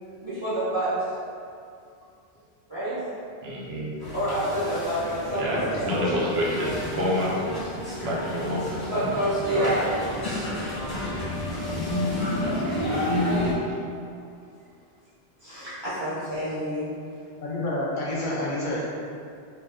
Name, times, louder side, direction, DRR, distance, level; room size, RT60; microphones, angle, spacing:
voice 1, 0.2-1.0 2.7-3.0 4.1-5.9 7.6-7.7 8.8-9.9 13.1-13.2 15.4-16.9, right 1 dB, 30° right, -12 dB, 0.8 m, -28 dB
voice 2, 3.4-4.0 5.4-7.3 8.0-9.2 9.5-9.8 12.3-13.2 13.8-13.9, equal, 75° right, -4 dB, 0.9 m, -29 dB
sound 1, 4.0-13.5, left 1 dB, 25° left, 0.7 m, -30 dB
voice 3, 17.4-18.8, left 1 dB, 60° left, -5 dB, 0.6 m, -28 dB
2.4 x 2.3 x 3.4 m, 2.4 s
omnidirectional pair, 1.1 m